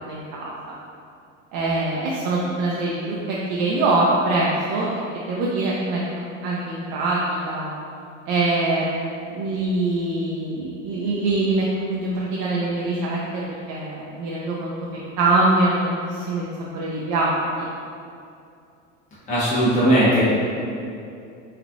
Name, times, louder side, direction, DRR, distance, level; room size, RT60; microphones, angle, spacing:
voice 1, 0.1-0.7 1.5-4.9 5.1-6.0 6.4-7.8 8.3-8.9 9.3-14.7 15.2-16.5 16.7-17.6, right 2 dB, 55° right, -5 dB, 0.5 m, -23 dB
voice 2, 19.3-20.2, right 1 dB, 20° left, -11 dB, 0.9 m, -18 dB
3.0 x 2.4 x 2.5 m, 2.5 s
hypercardioid pair, 85°, 39 cm